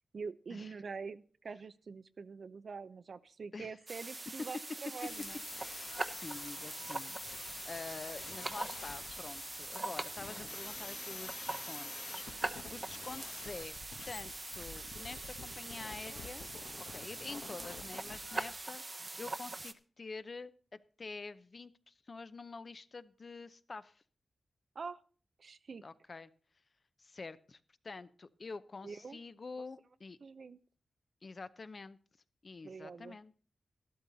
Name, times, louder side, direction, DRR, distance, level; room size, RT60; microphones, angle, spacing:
voice 1, 0.1-5.4 17.4-17.6 24.8-25.0 25.4-25.8 28.8-29.2 30.2-30.6 32.6-33.2, right 5 dB, 65° right, 14 dB, 0.6 m, -45 dB
sound 1, 3.9-19.7, right 2 dB, 30° right, 0.9 m, -43 dB
sound 2, 5.0-18.6, left 5 dB, 85° left, 1.3 m, -49 dB
voice 2, 5.6-13.8 14.1-16.5 16.9-20.5 21.0-24.0 25.8-26.3 27.0-27.6 27.8-30.2 31.2-32.0 32.4-33.3, left 4 dB, 45° left, 13 dB, 0.7 m, -47 dB
12.5 x 12.5 x 4.0 m, 0.42 s
wide cardioid pair, 85°, 0 cm